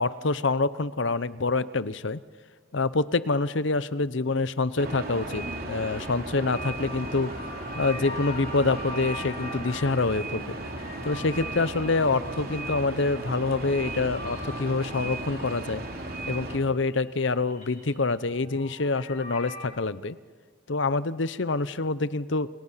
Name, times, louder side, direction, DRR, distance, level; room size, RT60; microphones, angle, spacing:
voice 1, 0.0-2.2 2.7-7.3 7.7-10.6 11.0-15.8 16.3-20.2 20.7-22.5, left 3 dB, 60° left, 16 dB, 0.8 m, -26 dB
sound 1, 4.8-16.6, right 2 dB, 45° right, 3.5 m, -36 dB
sound 2, 6.3-16.6 16.8-19.6, left 2 dB, 35° left, 4.6 m, -43 dB
29.5 x 28.0 x 5.7 m, 1.4 s
head